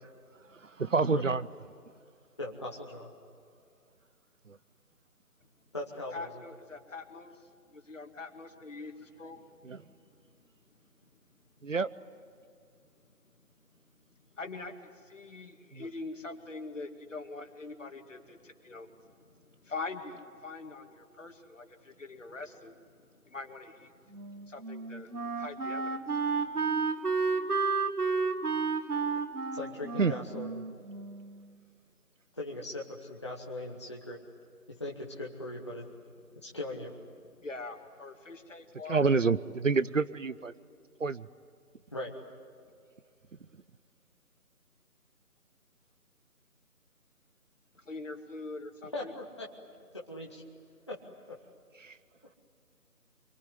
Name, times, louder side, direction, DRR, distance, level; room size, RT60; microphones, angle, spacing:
voice 1, 0.5-1.5 4.5-4.6 9.6-9.8 11.6-11.9 15.7-15.9 30.0-30.1 38.9-40.5 41.0-41.3 51.8-52.0, right 4 dB, 55° right, 16 dB, 0.8 m, -28 dB
voice 2, 2.4-3.1 5.7-6.4 29.5-30.6 32.3-34.2 34.7-35.9 36.3-36.9 41.9-42.2 48.9-49.5 50.1-50.4 50.9-51.0 51.3-51.4, left 1 dB, 20° left, -2 dB, 1.0 m, -39 dB
voice 3, 6.1-9.4 10.0-10.4 11.3-11.4 14.3-22.8 23.1-26.2 37.4-39.1 47.7-49.1, left 3 dB, 55° left, 5 dB, 2.3 m, -44 dB
Wind instrument woodwind instrument, 24.1-31.4, right 4 dB, 75° right, 1.9 m, -32 dB
26.0 x 23.0 x 9.6 m, 2.3 s
figure-of-eight pair, 160°, 45 cm